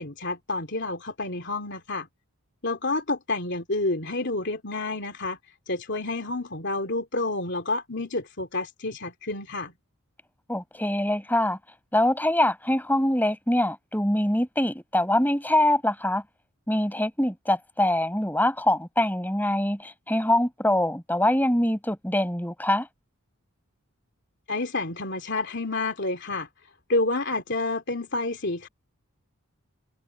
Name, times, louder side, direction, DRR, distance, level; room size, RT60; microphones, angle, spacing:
voice 1, 0.0-2.1 2.6-5.4 5.7-9.7 24.5-26.5 26.9-28.7, left 2 dB, 50° left, 3.2 m, -29 dB
voice 2, 10.5-11.6 11.9-16.2 16.7-22.9, left 1 dB, 10° left, 5.8 m, -24 dB
head